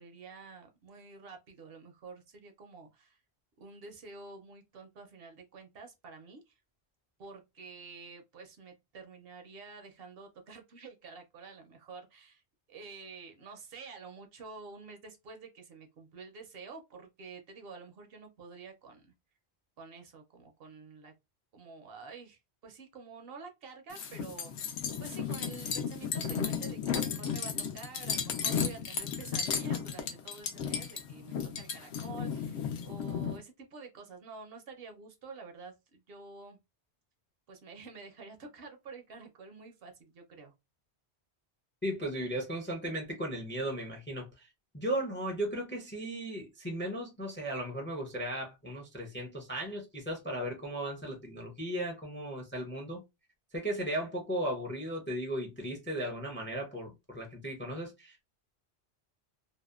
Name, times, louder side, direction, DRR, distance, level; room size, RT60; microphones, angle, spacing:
voice 1, 0.0-3.2 3.6-6.6 7.2-12.4 12.7-19.1 19.8-21.1 21.5-24.7 25.0-36.6 37.5-40.5, right 4 dB, 65° right, 0.8 m, -49 dB
sound 1, 23.9-33.4, left 7 dB, 75° left, 0.8 m, -34 dB
voice 2, 41.8-44.5 44.7-53.0 53.5-58.2, right 1 dB, 15° left, 0.4 m, -36 dB
2.7 x 2.1 x 2.3 m
omnidirectional pair, 1.1 m